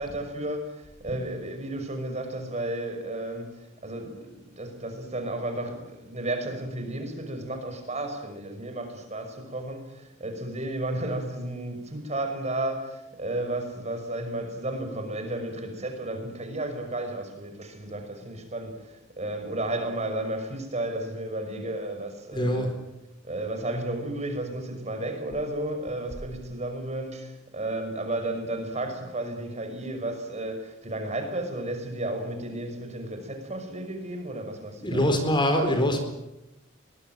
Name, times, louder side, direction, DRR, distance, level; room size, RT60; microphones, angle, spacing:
voice 1, 0.0-22.7 23.2-35.2, right 1 dB, 35° right, 6 dB, 5.8 m, -33 dB
voice 2, 22.3-22.7 34.8-36.0, equal, 25° left, 6 dB, 4.3 m, -23 dB
24.0 x 20.5 x 9.2 m, 0.92 s
head